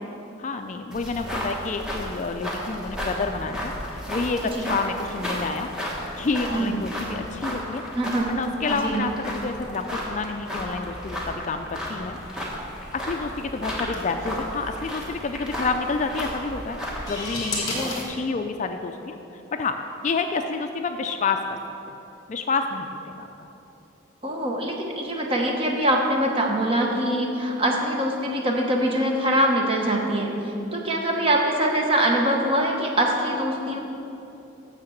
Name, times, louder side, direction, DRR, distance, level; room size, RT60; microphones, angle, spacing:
voice 1, 0.4-7.8 8.3-12.5 12.9-16.8 17.1-19.8 20.0-21.6 22.3-23.5 30.5-30.7, left 4 dB, 35° left, 6 dB, 0.3 m, -29 dB
sound 1, 0.9-17.3, equal, 5° right, 1.1 m, -33 dB
voice 2, 7.9-8.3 8.7-9.1 17.7-18.0 24.2-30.3 30.7-33.8, right 1 dB, 25° right, 0 dB, 0.9 m, -23 dB
sound 2, 12.2-18.0, left 2 dB, 20° left, 1.5 m, -36 dB
6.6 x 6.5 x 7.2 m, 2.9 s
head